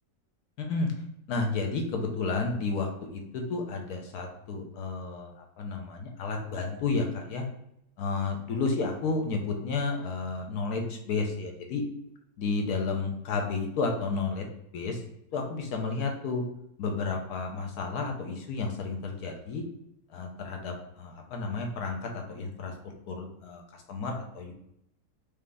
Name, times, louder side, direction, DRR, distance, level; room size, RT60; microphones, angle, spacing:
voice 1, 0.6-0.9 1.3-7.4 8.0-11.8 12.4-14.4 14.7-15.0 15.3-16.4 16.8-19.6 20.1-22.7 23.1-23.6 23.9-24.5, left 4 dB, 65° left, 2 dB, 1.3 m, -31 dB
5.0 x 2.9 x 3.4 m, 0.76 s
omnidirectional pair, 1.9 m